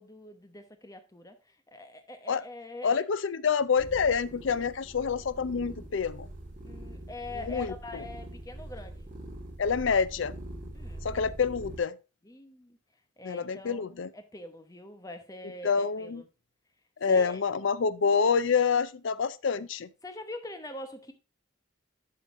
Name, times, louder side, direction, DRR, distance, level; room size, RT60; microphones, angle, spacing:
voice 1, 0.0-3.0 6.6-9.1 10.7-11.1 12.2-12.8 13.2-16.3 17.1-17.4 20.0-21.1, left 2 dB, 15° left, 0.9 m, -44 dB
voice 2, 2.8-6.3 7.5-8.0 9.6-10.3 11.0-11.9 13.2-14.1 15.6-16.2 17.0-19.9, left 5 dB, 75° left, 0.5 m, -27 dB
sound 1, 3.8-11.8, right 1 dB, 40° right, 2.7 m, -43 dB
11.5 x 4.0 x 3.7 m
head